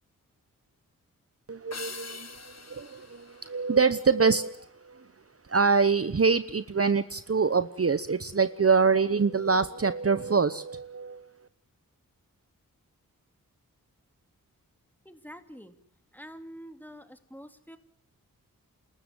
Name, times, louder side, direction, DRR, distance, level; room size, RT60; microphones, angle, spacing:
voice 1, 1.5-5.1 5.5-11.3, right 5 dB, 40° right, 13 dB, 1.0 m, -25 dB
sound 1, 1.7-4.3, left 4 dB, 50° left, 1.7 m, -44 dB
voice 2, 15.0-15.8 16.1-17.8, equal, 5° left, 8 dB, 2.6 m, -46 dB
28.0 x 13.5 x 9.6 m, 0.69 s
cardioid pair, 50°, 34 cm